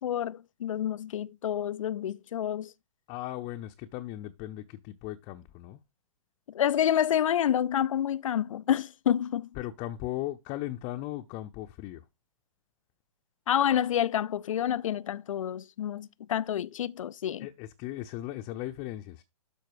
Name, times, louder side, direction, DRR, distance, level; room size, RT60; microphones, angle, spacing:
voice 1, 0.0-2.7 6.5-9.5 13.5-17.5, left 10 dB, 65° left, 0.5 m, -28 dB
voice 2, 3.1-5.8 9.6-12.0 17.4-19.2, left 15 dB, 30° left, 0.8 m, -37 dB
12.0 x 4.4 x 4.8 m
figure-of-eight pair, 120°, 18 cm